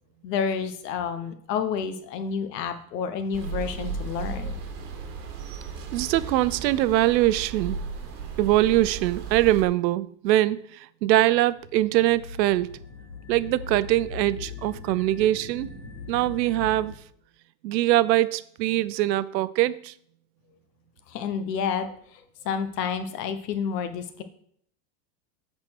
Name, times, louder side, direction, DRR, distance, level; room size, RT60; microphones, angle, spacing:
voice 1, 0.2-4.6 21.1-24.2, left 6 dB, 75° left, 1.2 m, -30 dB
sound 1, 3.3-9.6, right 5 dB, 50° right, 2.0 m, -35 dB
voice 2, 5.9-7.8 8.4-12.8 13.3-15.7 16.1-16.9 17.6-19.9, right 15 dB, 90° right, 0.7 m, -23 dB
sound 2, 11.2-17.0, left 4 dB, 20° left, 0.3 m, -40 dB
8.8 x 4.4 x 6.2 m
supercardioid pair, 170°, 49 cm